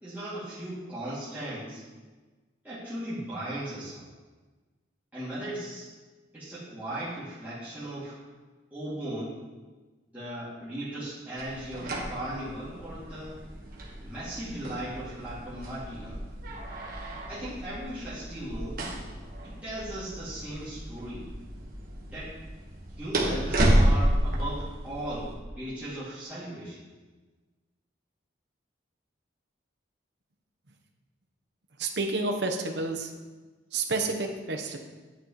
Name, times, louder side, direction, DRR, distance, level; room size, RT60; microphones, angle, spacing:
voice 1, 0.0-1.8 2.6-4.1 5.1-5.9 6.3-8.2 8.7-9.3 10.1-13.4 14.0-16.2 17.3-18.9 19.4-21.3 22.1-22.4 23.0-26.8, right 1 dB, 10° right, -13 dB, 2.4 m, -37 dB
sound 1, 11.4-25.3, right 1 dB, 50° right, 1.4 m, -31 dB
voice 2, 31.8-33.1 33.7-34.8, right 3 dB, 65° right, 3 dB, 1.0 m, -29 dB
8.9 x 8.1 x 3.1 m, 1.3 s
head